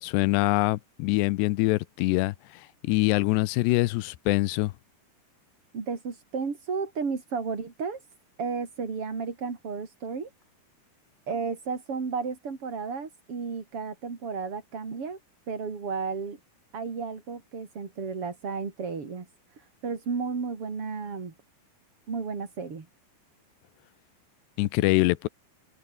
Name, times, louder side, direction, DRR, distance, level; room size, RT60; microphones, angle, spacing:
voice 1, 0.0-4.7 24.6-25.3, left 20 dB, 90° left, 2.9 m, -24 dB
voice 2, 5.7-8.0 8.4-10.3 11.3-15.2 15.5-16.4 16.7-19.3 19.6-21.3 22.1-22.9, right 5 dB, 35° right, 4.1 m, -33 dB
omnidirectional pair, 4.8 m